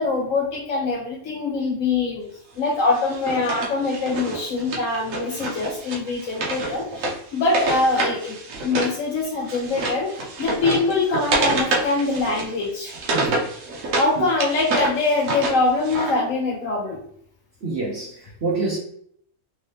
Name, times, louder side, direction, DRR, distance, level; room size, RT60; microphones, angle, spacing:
voice 1, 0.0-2.3 2.6-7.1 7.3-8.4 8.6-12.9 14.0-17.0, left 3 dB, 80° left, 1.1 m, -23 dB
Wood, 2.9-9.0 9.2-14.1 14.4-16.1, right 2 dB, 85° right, 1.2 m, -27 dB
voice 2, 13.1-13.4 14.2-14.3 17.6-18.8, right 3 dB, 60° right, 1.1 m, -27 dB
3.5 x 2.8 x 3.3 m
omnidirectional pair, 1.3 m